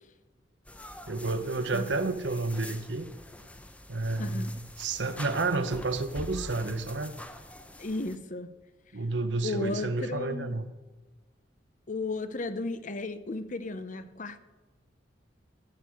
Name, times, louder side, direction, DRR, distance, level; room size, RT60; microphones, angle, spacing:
sound 1, 0.7-8.2, left 1 dB, 10° left, 0.8 m, -45 dB
voice 1, 1.1-3.1 3.9-7.1 8.9-10.7, right 3 dB, 80° right, 10 dB, 1.1 m, -30 dB
voice 2, 1.7-2.2 4.2-4.5 7.8-8.5 9.4-10.6 11.9-14.4, left 2 dB, 45° left, 12 dB, 0.8 m, -34 dB
13.5 x 6.6 x 9.1 m, 1.2 s
head